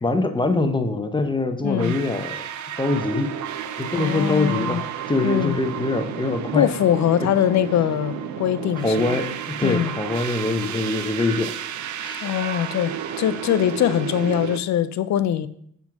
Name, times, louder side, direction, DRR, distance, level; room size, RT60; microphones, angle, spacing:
voice 1, 0.0-2.4 2.8-3.3 3.8-6.7 8.8-11.5 12.0-12.3, left 2 dB, 15° left, 0.9 m, -24 dB
voice 2, 1.6-2.0 4.0-4.8 5.2-5.5 6.5-9.2 9.6-9.9 12.2-15.5, left 10 dB, 60° left, 0.6 m, -22 dB
sound 1, 1.8-14.6, right 9 dB, 65° right, 0.6 m, -32 dB
7.2 x 4.0 x 4.7 m
supercardioid pair, 55°, 31 cm